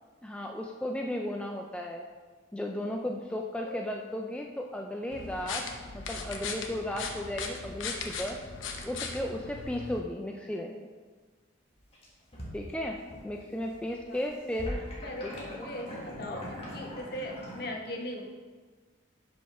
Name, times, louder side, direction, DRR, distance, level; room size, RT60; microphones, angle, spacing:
voice 1, 0.2-2.0 2.5-5.6 5.9-8.4 8.8-10.7 12.5-13.0 13.2-14.8 15.6-15.7 16.2-16.5, left 1 dB, 5° left, 1 dB, 0.3 m, -35 dB
sound 1, 5.1-10.0, left 4 dB, 85° left, 0.8 m, -38 dB
sound 2, 11.8-13.3 13.6-17.7, equal, 30° left, 1.5 m, -41 dB
voice 2, 15.0-18.3, left 1 dB, 55° left, 1 dB, 1.0 m, -39 dB
5.4 x 5.4 x 5.6 m, 1.4 s
head